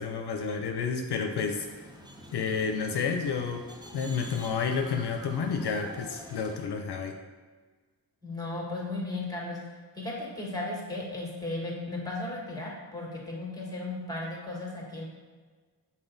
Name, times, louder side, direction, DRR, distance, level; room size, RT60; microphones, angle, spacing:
voice 1, 0.0-1.7 2.3-3.7 3.9-7.2, left 5 dB, 75° left, 5 dB, 0.5 m, -30 dB
sound 1, 1.5-6.6, equal, 10° right, 0.7 m, -47 dB
voice 2, 8.2-9.6 9.9-15.0, left 2 dB, 10° left, -3 dB, 1.7 m, -35 dB
6.0 x 4.2 x 3.9 m, 1.4 s
wide cardioid pair, 85°, 40 cm